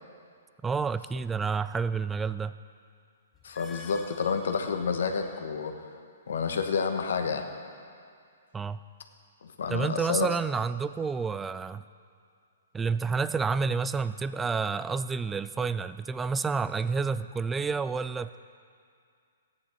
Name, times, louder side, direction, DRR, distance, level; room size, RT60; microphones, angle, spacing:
voice 1, 0.6-2.5 8.5-8.8 9.7-11.8 12.7-18.4, right 5 dB, 10° right, 14 dB, 0.3 m, -29 dB
sound 1, 3.3-5.6, left 4 dB, 20° left, 0.9 m, -50 dB
voice 2, 3.4-5.7 6.3-7.5 9.4-10.3, left 5 dB, 70° left, 5 dB, 1.1 m, -29 dB
15.0 x 9.9 x 4.4 m, 2.3 s
hypercardioid pair, 130°, 0 cm